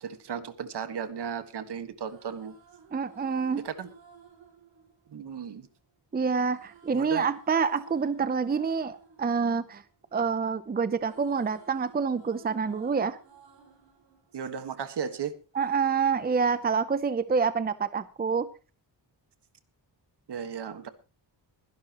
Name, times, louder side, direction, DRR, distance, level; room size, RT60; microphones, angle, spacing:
voice 1, 0.0-2.6 3.6-3.9 5.1-5.7 6.9-7.2 14.3-15.4 20.3-20.9, right 7 dB, 65° right, 10 dB, 1.7 m, -35 dB
sound 1, 1.8-5.9 6.5-10.6 10.8-15.1 15.6-17.0, right 5 dB, 85° right, 5.1 m, -56 dB
voice 2, 2.9-3.6 6.1-9.8 10.1-13.2 15.5-18.5, right 5 dB, 20° right, 13 dB, 0.7 m, -27 dB
22.0 x 11.5 x 3.0 m, 0.33 s
wide cardioid pair, 150°, 43 cm